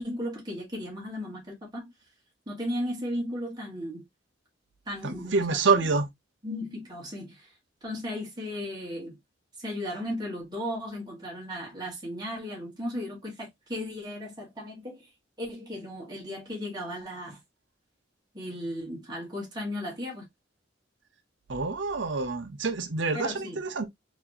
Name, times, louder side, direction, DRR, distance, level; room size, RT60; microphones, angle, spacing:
voice 1, 0.0-1.9 2.5-4.0 4.9-5.9 6.4-7.5 7.8-9.2 9.6-15.1 15.4-17.4 18.3-20.3 23.1-23.6, equal, 20° right, 1.8 m, -35 dB
voice 2, 5.0-6.1 21.5-23.9, right 4 dB, 70° right, 0.8 m, -27 dB
4.0 x 3.1 x 2.7 m
head